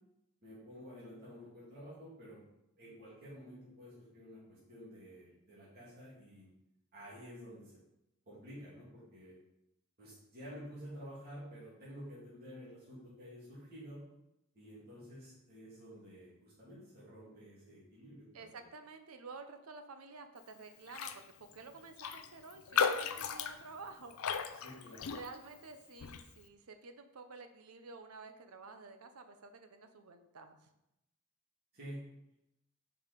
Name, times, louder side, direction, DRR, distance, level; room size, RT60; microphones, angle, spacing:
voice 1, 0.4-2.4 2.8-6.5 6.9-7.7 8.3-9.3 10.0-14.1 14.5-18.7 24.5-25.1 31.7-32.0, equal, 45° right, -9 dB, 2.6 m, -51 dB
voice 2, 18.3-24.2 24.6-24.8 25.1-30.6, right 3 dB, 90° right, 8 dB, 0.7 m, -51 dB
Raindrop, 20.9-21.2 21.5-21.6 22.0-25.6 26.0-26.3, left 6 dB, 70° left, 0.4 m, -36 dB
5.4 x 4.7 x 5.2 m, 0.87 s
head